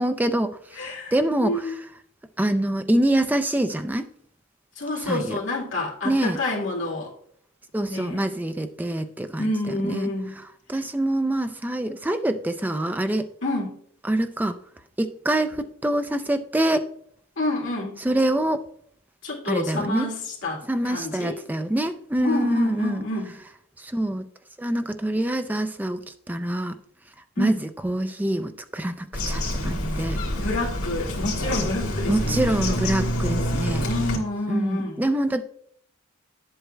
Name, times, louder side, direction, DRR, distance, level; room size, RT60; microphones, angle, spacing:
voice 1, 0.0-0.6 1.1-1.8 2.4-4.1 5.1-5.4 6.0-6.4 7.7-10.1 10.7-13.3 14.1-14.5 15.0-16.8 18.0-18.6 19.5-20.1 20.7-23.0 23.8-24.2 24.6-26.0 26.3-26.7 27.4-27.6 27.8-30.2 32.1-33.9 34.5-35.4, right 1 dB, 10° right, 9 dB, 0.4 m, -25 dB
voice 2, 0.7-1.1 1.4-1.8 4.8-7.1 7.8-8.3 9.4-10.3 13.4-13.8 17.4-18.0 19.2-21.4 22.2-23.3 27.4-27.6 30.3-32.4 32.7-32.8 33.8-35.0, left 2 dB, 60° left, -3 dB, 2.1 m, -29 dB
Bird vocalization bird call bird song, 29.1-34.2, equal, 90° left, 1.9 m, -27 dB
9.9 x 7.9 x 2.2 m, 0.66 s
head